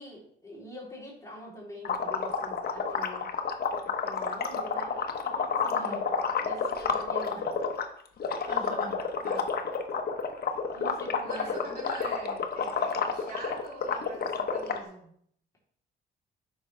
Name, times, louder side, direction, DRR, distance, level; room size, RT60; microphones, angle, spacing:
voice 1, 0.0-3.3 3.8-6.1 6.4-7.5 10.7-11.5, equal, 15° left, -5 dB, 3.1 m, -44 dB
sound 1, 1.8-7.8 8.2-14.8, left 6 dB, 50° left, 1.0 m, -30 dB
voice 2, 5.6-6.0 8.5-9.5 11.2-15.2, right 1 dB, 45° right, -4 dB, 3.5 m, -43 dB
8.5 x 5.9 x 3.2 m, 0.66 s
cardioid pair, 90°, 20 cm